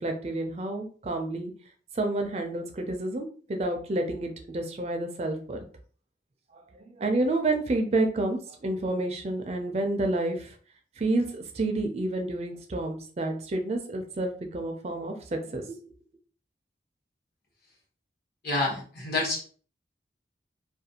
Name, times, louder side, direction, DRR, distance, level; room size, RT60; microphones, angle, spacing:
voice 1, 0.0-1.5 1.9-5.6 6.5-10.6 11.0-15.8, right 2 dB, 35° right, 5 dB, 0.4 m, -29 dB
voice 2, 18.4-19.4, left 2 dB, 55° left, -4 dB, 1.1 m, -28 dB
2.4 x 2.3 x 2.8 m, 0.42 s
head